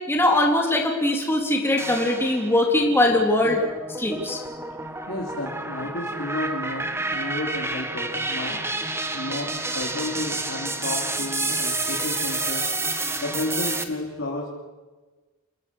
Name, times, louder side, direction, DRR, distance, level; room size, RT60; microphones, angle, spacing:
voice 1, 0.1-3.6 4.0-4.4, left 1 dB, 10° left, -1 dB, 3.8 m, -21 dB
sound 1, 1.8-2.6 3.1-13.8, right 2 dB, 10° right, 1.8 m, -29 dB
voice 2, 5.1-8.6 9.1-12.7 13.2-14.5, left 1 dB, 60° left, -3 dB, 4.0 m, -32 dB
29.0 x 20.0 x 6.5 m, 1.3 s
head